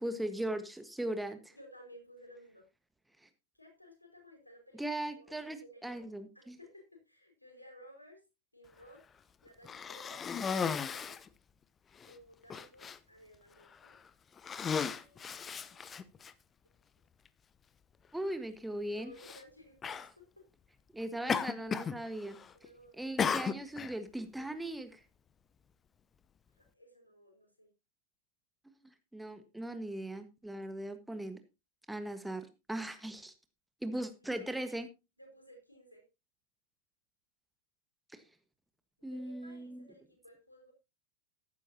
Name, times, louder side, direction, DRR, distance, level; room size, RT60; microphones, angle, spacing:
voice 1, 0.0-1.5 4.8-6.6 18.1-19.1 20.9-22.4 23.0-25.0 29.1-31.4 31.9-33.3 33.8-34.9 38.1-38.2 39.0-39.9, right 1 dB, 5° right, 9 dB, 1.4 m, -39 dB
voice 2, 1.5-2.6 3.5-4.8 5.2-6.0 6.3-8.2 8.5-9.0 9.4-11.2 11.9-14.0 14.7-16.1 18.9-20.4 22.6-23.1 26.6-27.7 33.1-33.2 34.2-34.5 35.2-36.0 39.0-40.7, equal, 85° left, 3 dB, 5.2 m, -57 dB
Cough, 9.6-11.3 12.0-12.1 12.5-13.0 13.7-14.0 14.4-16.3 17.3-17.4 19.2-19.4 19.8-20.1 21.3-22.0 22.2-22.7 23.2-23.9, left 6 dB, 20° left, 0.8 m, -35 dB
14.5 x 11.5 x 2.8 m, 0.26 s
figure-of-eight pair, 90°, 0 cm